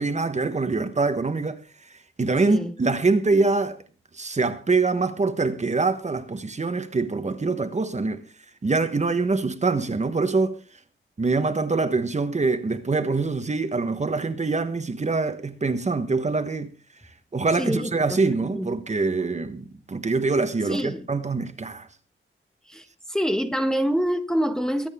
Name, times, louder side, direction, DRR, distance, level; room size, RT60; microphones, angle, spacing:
voice 1, 0.0-1.6 2.2-3.8 4.1-8.2 8.6-10.6 11.2-16.7 17.3-21.9, right 3 dB, 35° right, 1.3 m, -24 dB
voice 2, 17.6-17.9 18.4-18.7 20.7-21.1 22.7-24.9, equal, 5° left, 1.2 m, -26 dB
23.0 x 9.1 x 3.7 m
wide cardioid pair, 160°, 21 cm